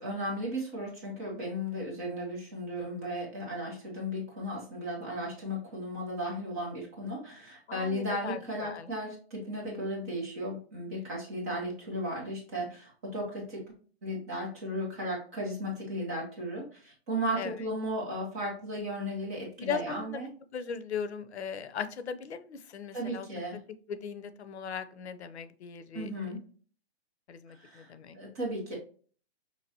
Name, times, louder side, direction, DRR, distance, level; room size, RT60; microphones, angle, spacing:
voice 1, 0.0-13.7 14.0-20.3 22.9-23.6 25.9-26.4 27.5-28.7, equal, 15° right, -2 dB, 0.8 m, -35 dB
voice 2, 7.7-8.9 17.4-17.5 19.6-23.3 23.9-26.3 27.3-28.2, left 6 dB, 85° left, 12 dB, 0.7 m, -38 dB
5.7 x 3.0 x 2.7 m, 0.41 s
hypercardioid pair, 175°, 32 cm